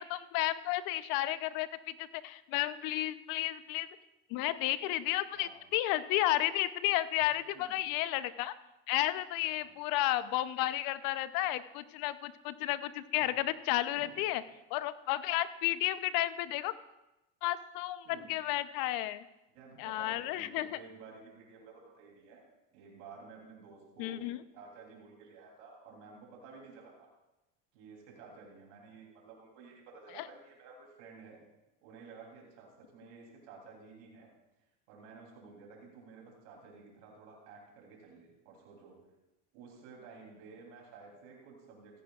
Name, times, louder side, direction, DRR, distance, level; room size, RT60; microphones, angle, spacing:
voice 1, 0.0-3.9 4.3-8.5 8.9-14.4 14.7-16.7 17.4-19.2 19.8-20.8 24.0-24.4 30.2-30.3, left 15 dB, 65° left, 14 dB, 0.7 m, -32 dB
voice 2, 5.3-5.6 7.4-7.7 9.4-9.7 13.2-13.3 13.9-14.2 18.0-18.3 19.5-22.4 22.7-24.2 24.5-27.1 27.7-31.4 31.8-34.3 34.9-39.0 39.5-42.0, right 4 dB, 80° right, -1 dB, 3.3 m, -53 dB
15.5 x 14.5 x 2.4 m, 0.96 s
supercardioid pair, 85°, 36 cm